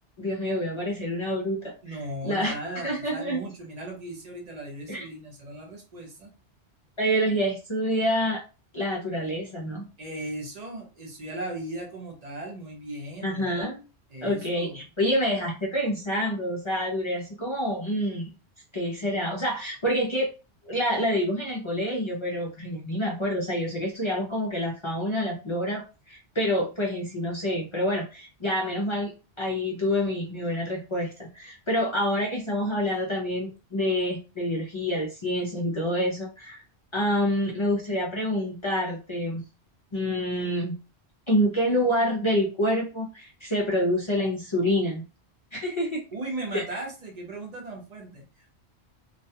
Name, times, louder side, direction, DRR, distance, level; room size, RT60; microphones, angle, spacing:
voice 1, 0.2-1.7 2.2-2.5 2.8-3.4 4.9-5.1 7.0-8.4 8.7-9.9 13.2-13.8 14.2-18.3 18.7-20.3 20.6-29.1 29.4-36.6 36.9-39.4 39.9-40.8 41.3-45.0 45.5-46.0 46.5-46.6, equal, 40° left, -3 dB, 0.4 m, -27 dB
voice 2, 1.8-6.3 10.0-13.5 14.1-14.8 46.1-48.6, right 1 dB, 40° right, 1 dB, 0.7 m, -37 dB
2.4 x 2.2 x 2.7 m, 0.32 s
omnidirectional pair, 1.2 m